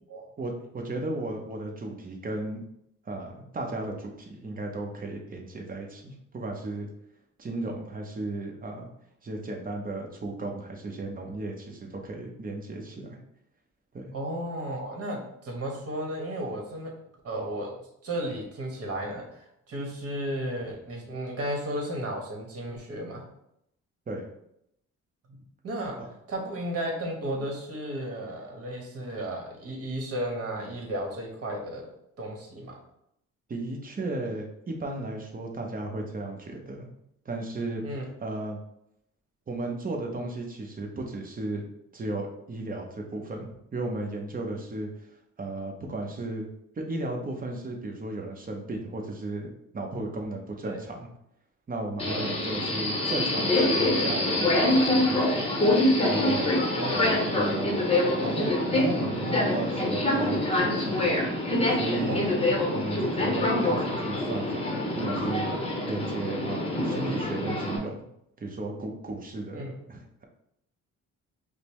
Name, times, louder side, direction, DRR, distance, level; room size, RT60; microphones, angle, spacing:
voice 1, 0.4-2.6 3.1-6.9 7.4-8.9 9.2-13.2 13.9-14.1 24.1-24.3 33.5-36.9 37.2-37.8 38.2-38.6 39.5-41.7 41.9-44.9 45.4-46.5 46.8-51.1 51.7-55.6 56.0-56.5 56.9-57.9 58.2-60.9 61.7-62.2 62.7-65.5 65.9-68.0 68.4-70.2, right 2 dB, 30° right, 1 dB, 0.8 m, -35 dB
voice 2, 14.1-16.9 17.2-17.7 18.0-19.2 19.7-23.2 25.3-25.9 26.3-31.8 32.2-32.8 37.8-38.1 50.6-50.8 52.1-52.4 56.8-57.7 62.1-62.6 69.5-69.8, right 1 dB, 50° right, 0 dB, 1.2 m, -34 dB
Subway metro underground, 52.0-67.8, left 1 dB, 20° left, 0.8 m, -25 dB
5.0 x 2.1 x 3.0 m, 0.77 s
cardioid pair, 90°, 30 cm